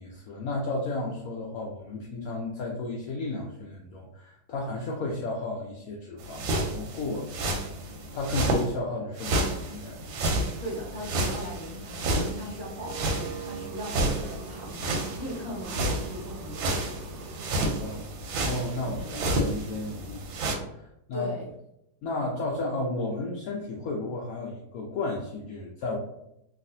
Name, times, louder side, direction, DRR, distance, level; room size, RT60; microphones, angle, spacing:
voice 1, 0.0-7.5 8.1-10.0 17.8-18.1 18.4-21.3 22.0-26.0, left 2 dB, 80° left, -2 dB, 0.7 m, -33 dB
sound 1, 6.2-8.7 9.2-20.6, right 1 dB, 90° right, 1.4 m, -30 dB
voice 2, 10.6-16.8 17.5-17.7 18.8-19.4 21.1-21.4, equal, 20° left, -8 dB, 0.8 m, -39 dB
sound 2, 12.8-18.0, right 5 dB, 70° right, 1.0 m, -44 dB
3.2 x 2.4 x 2.6 m, 0.81 s
omnidirectional pair, 2.1 m